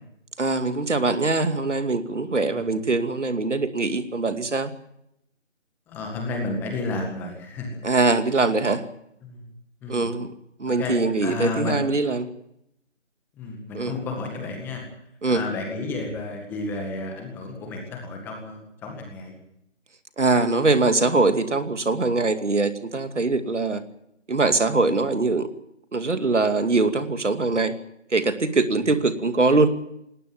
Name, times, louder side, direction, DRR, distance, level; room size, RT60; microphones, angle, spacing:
voice 1, 0.4-4.7 7.8-8.9 9.9-10.3 10.6-12.3 13.7-13.9 15.2-15.4 20.2-23.8 24.3-25.5 25.9-27.7 28.1-29.7, right 3 dB, 70° right, 9 dB, 2.6 m, -22 dB
voice 2, 5.9-7.7 9.2-9.5 9.8-10.1 10.7-11.8 13.4-14.9 15.3-19.3 28.8-28.9, left 3 dB, 5° left, 2 dB, 1.8 m, -32 dB
19.5 x 19.0 x 9.2 m, 0.77 s
figure-of-eight pair, 160°, 37 cm